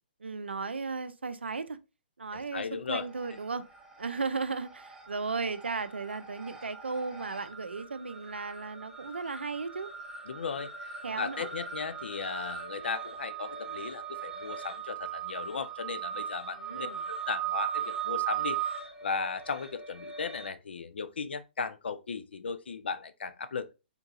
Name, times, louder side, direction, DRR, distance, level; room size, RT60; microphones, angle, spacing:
voice 1, 0.2-1.8 2.2-3.6 4.0-9.9 11.0-11.5 16.6-17.0, right 4 dB, 90° right, 0.4 m, -35 dB
voice 2, 2.3-3.1 10.3-23.7, left 5 dB, 80° left, 0.3 m, -36 dB
sound 1, 2.9-3.6 3.9-20.5, right 9 dB, 10° right, 0.6 m, -38 dB
3.6 x 2.7 x 2.3 m
hypercardioid pair, 130°, 6 cm